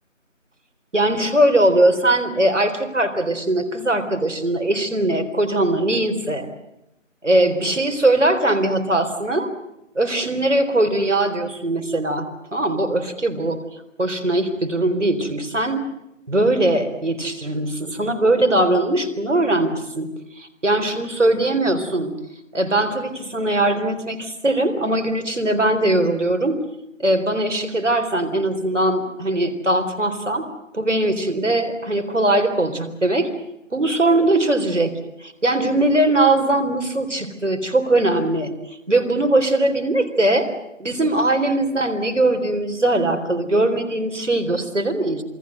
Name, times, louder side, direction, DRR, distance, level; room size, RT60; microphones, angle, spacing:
voice 1, 0.9-6.5 7.2-9.5 10.0-12.3 12.5-13.6 14.0-15.8 16.3-20.1 20.4-22.1 22.5-26.6 27.0-30.5 30.7-33.3 33.7-34.9 35.2-38.5 38.9-40.5 40.8-45.2, right 1 dB, 70° right, 8 dB, 4.0 m, -20 dB
27.5 x 21.5 x 7.9 m, 0.87 s
figure-of-eight pair, 180°, 39 cm